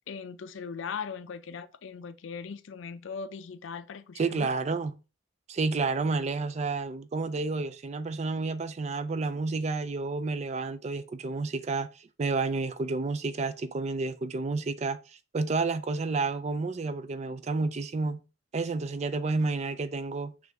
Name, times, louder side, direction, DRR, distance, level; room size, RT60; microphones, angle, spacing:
voice 1, 0.1-4.5, left 6 dB, 75° left, 0.4 m, -39 dB
voice 2, 4.2-5.0 5.5-15.0 15.3-18.2 18.5-20.3, right 3 dB, 35° right, 0.3 m, -30 dB
6.1 x 2.5 x 3.5 m
head